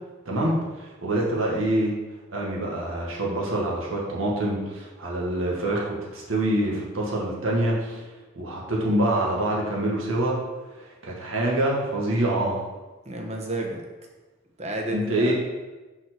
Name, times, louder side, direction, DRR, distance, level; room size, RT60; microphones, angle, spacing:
voice 1, 0.3-1.9 2.3-8.0 8.4-10.4 11.0-12.7 14.9-15.3, right 1 dB, 90° right, -3 dB, 1.8 m, -25 dB
voice 2, 13.0-13.8 14.6-15.3, right 1 dB, 35° right, 1 dB, 1.1 m, -31 dB
5.4 x 4.5 x 6.1 m, 1.2 s
head